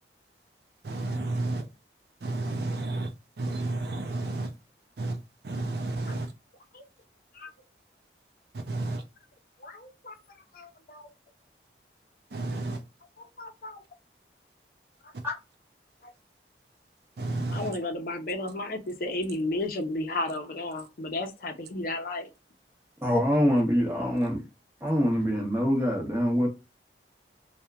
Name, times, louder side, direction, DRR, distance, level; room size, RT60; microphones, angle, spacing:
voice 1, 0.8-1.7 2.2-3.1 3.4-4.5 5.0-5.2 5.4-6.3 8.5-9.0 12.3-12.8 17.2-17.7, right 2 dB, 65° right, 0.4 m, -31 dB
voice 2, 9.6-10.2 10.5-11.1 13.2-13.8 15.0-15.1 16.0-16.1 17.5-22.3, left 2 dB, 50° left, 0.5 m, -33 dB
voice 3, 23.0-24.4 24.8-26.5, equal, 15° right, 0.8 m, -24 dB
2.8 x 2.1 x 2.3 m
head